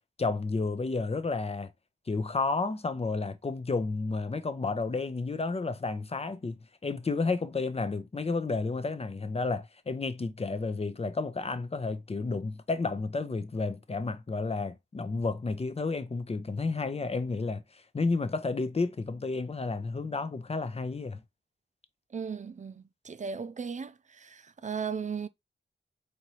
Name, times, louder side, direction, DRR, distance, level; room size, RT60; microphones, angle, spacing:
voice 1, 0.2-1.7 2.1-17.6 17.9-21.2, left 3 dB, 30° left, 0.6 m, -31 dB
voice 2, 22.1-25.3, right 6 dB, 40° right, 0.4 m, -36 dB
4.3 x 2.8 x 3.1 m
wide cardioid pair, 75°, 20 cm